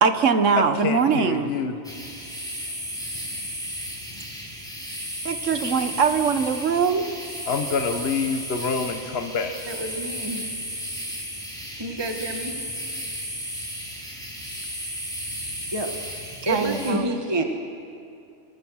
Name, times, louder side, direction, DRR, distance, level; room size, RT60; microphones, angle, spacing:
voice 1, 0.0-1.5 5.2-7.1 16.5-17.1, right 5 dB, 85° right, 9 dB, 1.5 m, -21 dB
voice 2, 0.8-1.7 7.5-9.5, left 5 dB, 55° left, 6 dB, 1.4 m, -26 dB
sound 1, 1.8-16.9, equal, 5° left, 4.2 m, -34 dB
voice 3, 9.6-10.4 11.8-12.6 15.7-15.9 16.4-17.4, right 2 dB, 20° right, 3 dB, 1.4 m, -28 dB
26.0 x 23.0 x 6.4 m, 2.5 s
omnidirectional pair, 1.3 m